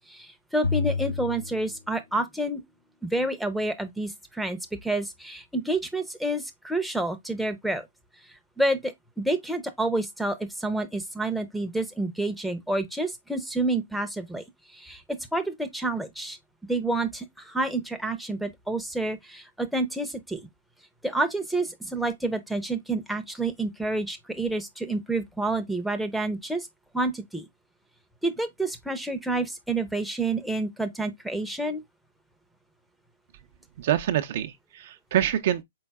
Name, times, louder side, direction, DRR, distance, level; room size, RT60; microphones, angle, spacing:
voice 1, 0.1-2.6 3.0-7.8 8.6-14.4 14.7-16.4 16.7-20.4 21.0-26.7 26.9-27.4 28.2-31.8, right 2 dB, ahead, 0.6 m, -29 dB
sound 1, 0.6-2.4, left 4 dB, 80° left, 1.6 m, -30 dB
voice 2, 33.8-35.6, right 11 dB, 55° right, 0.5 m, -26 dB
4.6 x 3.8 x 2.2 m
hypercardioid pair, 125°, 0 cm